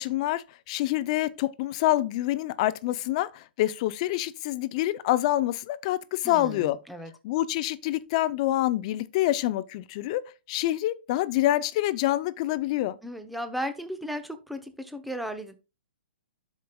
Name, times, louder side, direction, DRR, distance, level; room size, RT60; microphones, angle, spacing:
voice 1, 0.0-6.8 7.2-13.0, left 15 dB, 35° left, 0.6 m, -27 dB
voice 2, 6.2-7.1 13.0-15.6, equal, ahead, 0.8 m, -35 dB
12.0 x 5.1 x 2.3 m
hypercardioid pair, 150°, 6 cm